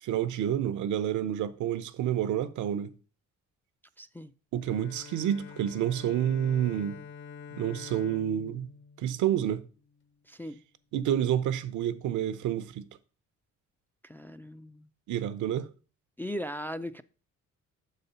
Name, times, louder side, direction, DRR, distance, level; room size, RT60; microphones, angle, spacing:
voice 1, 0.0-2.9 4.5-7.0 7.5-8.7 9.0-9.6 10.9-12.9 15.1-15.7, right 10 dB, 75° right, 0.7 m, -29 dB
voice 2, 4.0-4.3 10.3-10.6 14.0-14.9 16.2-17.0, equal, 5° left, 0.3 m, -38 dB
Bowed string instrument, 4.6-10.1, left 6 dB, 40° left, 0.7 m, -47 dB
7.0 x 4.1 x 5.4 m
cardioid pair, 90°, 30 cm